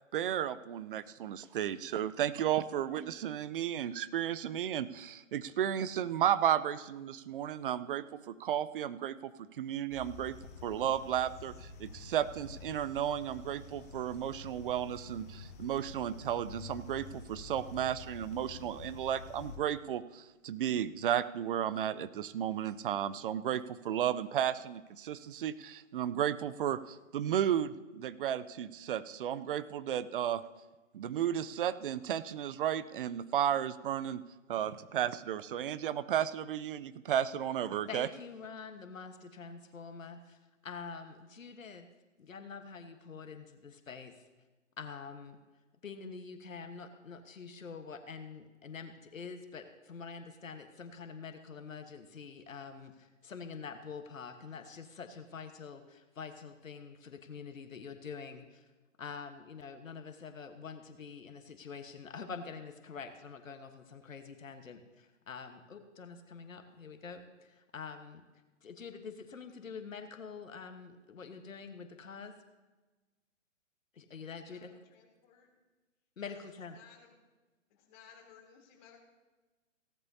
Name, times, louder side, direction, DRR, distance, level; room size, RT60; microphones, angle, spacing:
voice 1, 0.1-10.3 10.6-30.4 30.9-34.2 34.5-38.1, right 10 dB, 45° right, 16 dB, 0.6 m, -33 dB
sound 1, 9.9-19.6, left 4 dB, 15° left, 0.4 m, -49 dB
voice 2, 37.9-41.9 42.2-44.2 44.8-45.4 45.8-58.6 59.0-68.2 68.6-72.3 73.9-74.7 76.2-76.8, left 5 dB, 85° left, 7 dB, 1.4 m, -46 dB
voice 3, 74.4-75.5 76.2-76.3 76.7-77.1 77.7-79.0, left 7 dB, 35° left, 0 dB, 3.4 m, -59 dB
17.0 x 13.0 x 2.8 m, 1.2 s
hypercardioid pair, 140°, 39 cm